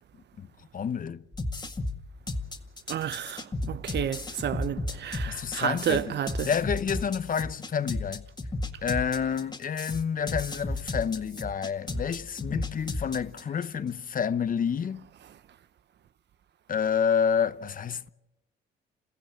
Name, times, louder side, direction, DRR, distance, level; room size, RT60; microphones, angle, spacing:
voice 1, 0.7-1.2 5.3-8.2 8.8-15.1 16.7-18.1, left 7 dB, 45° left, 0.9 m, -29 dB
sound 1, 1.3-13.6, left 2 dB, 20° left, 2.0 m, -34 dB
voice 2, 2.9-6.5, right 10 dB, 60° right, 0.8 m, -31 dB
28.5 x 15.5 x 7.8 m
cardioid pair, 90°, 20 cm